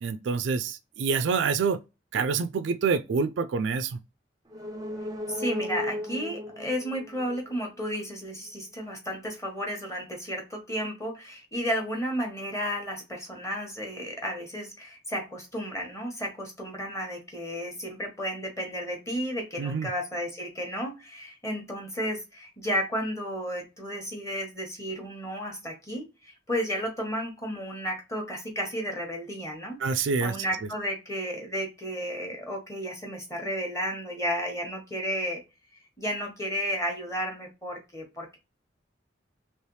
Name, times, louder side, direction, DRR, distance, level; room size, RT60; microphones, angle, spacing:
voice 1, 0.0-1.8 2.1-4.0 19.6-19.9 29.8-30.3, right 5 dB, 85° right, 0.4 m, -27 dB
sound 1, 4.5-8.2 8.5-8.6, left 1 dB, 20° right, 0.5 m, -36 dB
voice 2, 5.3-35.4 36.0-38.4, equal, 15° left, 1.0 m, -33 dB
3.2 x 2.9 x 3.1 m
head